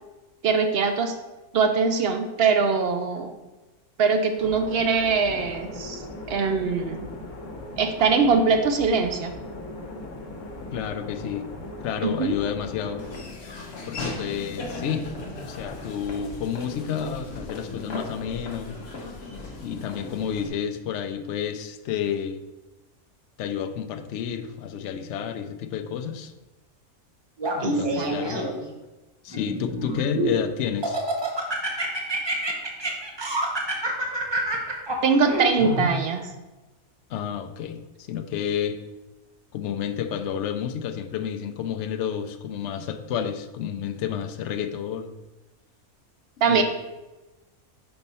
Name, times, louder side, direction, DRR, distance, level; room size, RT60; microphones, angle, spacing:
voice 1, 0.4-1.1 1.5-3.4 4.0-6.0 6.3-7.0 7.8-9.3 12.0-12.4 27.6-28.1 35.0-36.3 46.4-46.6, right 5 dB, 65° right, 6 dB, 0.6 m, -22 dB
sound 1, 4.4-13.2, left 2 dB, 85° left, 1.3 m, -39 dB
voice 2, 10.7-11.4 11.8-13.0 13.9-15.1 15.4-18.8 19.6-22.4 23.4-26.3 27.5-28.4 29.2-31.0 37.1-38.8 39.5-45.1 46.4-46.6, left 8 dB, 65° left, 7 dB, 0.8 m, -30 dB
Laughter / Walk footsteps, 13.0-20.5, left 3 dB, 50° left, 1.1 m, -37 dB
Laughter, 27.4-28.7 29.3-30.4 30.8-35.9, right 1 dB, 25° right, 0.6 m, -27 dB
4.5 x 4.2 x 5.4 m, 1.1 s
omnidirectional pair, 1.5 m